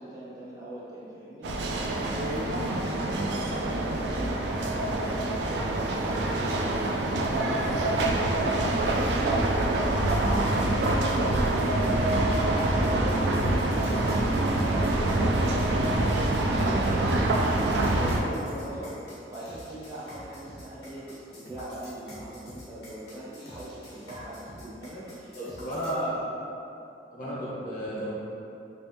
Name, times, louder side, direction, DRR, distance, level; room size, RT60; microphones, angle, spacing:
voice 1, 0.0-2.7 3.1-5.4 5.7-9.0 9.4-13.2 13.5-19.0 19.2-25.7 27.2-27.4, right 1 dB, 20° right, -9 dB, 0.7 m, -41 dB
sound 1, 1.4-18.2, right 2 dB, 75° right, 0.4 m, -25 dB
sound 2, 10.1-26.0, left 1 dB, 75° left, 1.2 m, -47 dB
voice 2, 25.3-26.1 27.1-28.1, equal, 50° left, -9 dB, 1.1 m, -33 dB
3.3 x 3.0 x 3.1 m, 2.8 s
head